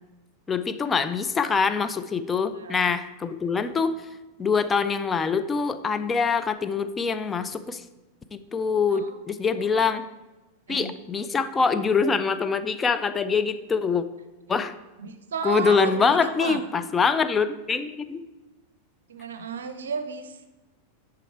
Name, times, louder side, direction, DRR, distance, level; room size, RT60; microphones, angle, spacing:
voice 1, 0.5-4.1 4.4-7.8 8.3-10.0 10.7-14.0 14.5-14.7 15.4-18.2, left 5 dB, 15° left, 10 dB, 0.3 m, -24 dB
voice 2, 2.5-2.9 8.9-9.2 9.5-9.9 10.7-10.9 15.0-16.6 19.1-20.5, right 5 dB, 65° right, 9 dB, 0.6 m, -33 dB
6.9 x 4.8 x 4.4 m, 1.1 s
figure-of-eight pair, 90°, 0 cm